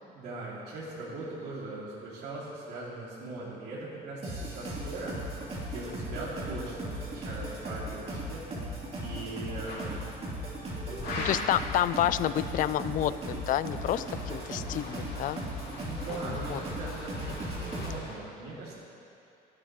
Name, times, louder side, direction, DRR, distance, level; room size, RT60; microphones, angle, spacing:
voice 1, 0.0-5.2 5.6-8.7 9.0-10.1 10.9-11.4 15.2-18.7, right 2 dB, 70° right, -8 dB, 2.7 m, -40 dB
sound 1, 4.2-17.9, right 1 dB, 35° right, 3.1 m, -37 dB
sound 2, 9.7-9.9 11.0-11.6 13.4-18.2, left 2 dB, 70° left, 2.9 m, -42 dB
voice 2, 11.2-15.4 16.5-16.6, left 12 dB, 55° left, 14 dB, 0.4 m, -29 dB
25.0 x 8.6 x 3.1 m, 2.7 s
cardioid pair, 110°, 17 cm